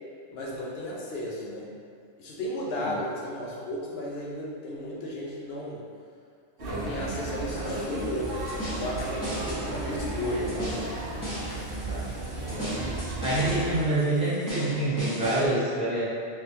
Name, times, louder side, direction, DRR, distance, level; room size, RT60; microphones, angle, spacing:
voice 1, 0.3-1.7 2.2-5.8 6.6-10.7, left 1 dB, 65° left, -4 dB, 0.9 m, -34 dB
sound 1, 6.6-13.8, right 2 dB, 60° right, 0.8 m, -34 dB
sound 2, 7.5-15.5, equal, 20° left, 0.8 m, -38 dB
voice 2, 9.6-10.1 11.7-12.0 12.4-12.9 13.2-16.0, right 2 dB, 5° right, -12 dB, 1.1 m, -27 dB
3.3 x 3.2 x 2.7 m, 2.3 s
omnidirectional pair, 1.2 m